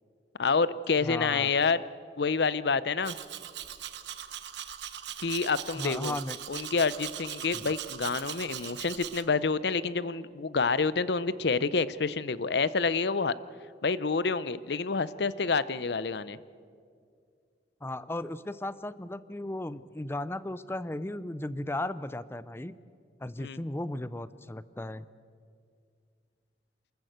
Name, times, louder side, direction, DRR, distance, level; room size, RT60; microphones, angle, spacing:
voice 1, 0.4-1.8 2.2-3.1 5.2-6.2 6.5-13.3 13.8-16.4 23.4-23.6, left 4 dB, 65° left, 17 dB, 0.6 m, -28 dB
voice 2, 1.0-1.5 5.7-6.4 7.5-7.6 17.8-22.8 23.2-25.1, left 1 dB, 15° left, 16 dB, 0.5 m, -36 dB
Domestic sounds home sounds, 3.0-9.2, right 10 dB, 75° right, 1.0 m, -40 dB
28.0 x 14.0 x 8.0 m, 2.2 s
head